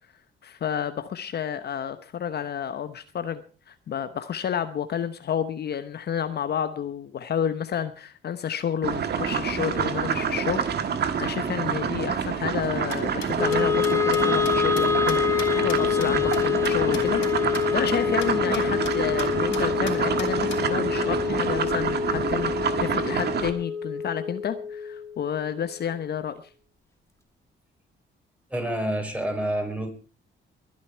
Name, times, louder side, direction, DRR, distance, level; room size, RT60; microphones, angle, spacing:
voice 1, 0.4-26.4, left 8 dB, 55° left, 10 dB, 1.0 m, -30 dB
sound 1, 8.8-23.5, right 7 dB, 55° right, 1.7 m, -27 dB
sound 2, 12.6-17.3 17.5-17.6 17.9-18.0 18.2-18.3 18.5-18.9 19.2-19.3 19.5-20.6, left 9 dB, 75° left, 3.2 m, -38 dB
Wind instrument woodwind instrument, 13.4-25.6, left 8 dB, 15° left, 1.9 m, -26 dB
voice 2, 28.5-29.9, right 1 dB, 5° right, 5 dB, 4.5 m, -28 dB
21.5 x 9.7 x 4.5 m, 0.38 s
cardioid pair, 90°, 20 cm